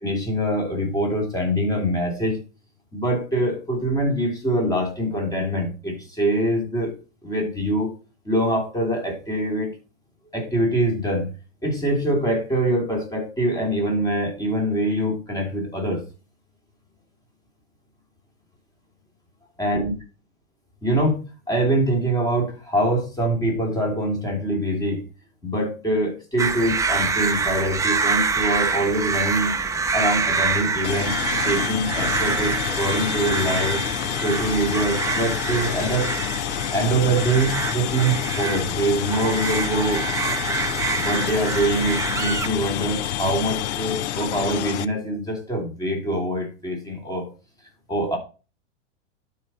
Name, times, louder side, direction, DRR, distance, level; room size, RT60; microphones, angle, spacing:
voice 1, 0.0-2.4 2.9-6.9 7.2-7.9 8.2-9.7 10.3-11.3 11.6-16.0 19.6-19.9 20.8-21.2 21.5-25.0 25.4-29.5 29.9-31.1 31.4-33.8 34.2-36.1 36.7-40.1 40.9-47.3 47.9-48.2, right 1 dB, 10° left, 1 dB, 3.2 m, -24 dB
sound 1, 26.4-42.5, right 4 dB, 10° right, 0.7 m, -26 dB
sound 2, 30.8-44.9, left 12 dB, 70° left, 0.7 m, -28 dB
12.0 x 4.8 x 4.2 m, 0.34 s
hypercardioid pair, 120°, 36 cm